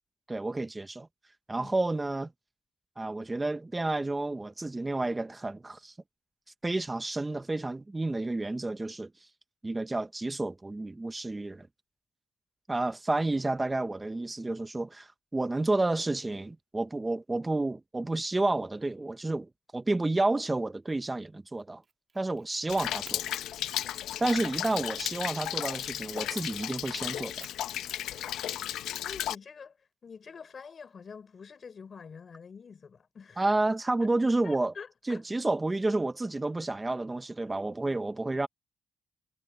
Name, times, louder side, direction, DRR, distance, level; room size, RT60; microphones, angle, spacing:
voice 1, 0.3-1.1 1.5-2.3 3.0-5.9 6.6-9.3 9.6-11.7 12.7-21.8 22.1-23.2 23.9-27.3 33.4-34.7 35.1-38.5, right 2 dB, 15° right, 0.9 m, -30 dB
Fire, 20.9-21.2 21.5-22.5 23.0-23.2 23.8-23.9 24.4-24.6 26.1-26.4 26.9-27.0 27.4-29.2 30.2-31.2, right 5 dB, 35° right, 2.5 m, -55 dB
Rain, 22.7-29.3, left 12 dB, 80° left, 0.8 m, -34 dB
voice 2, 29.0-33.5 34.4-35.2, left 6 dB, 45° left, 4.7 m, -47 dB
cardioid pair, 90°, 0 cm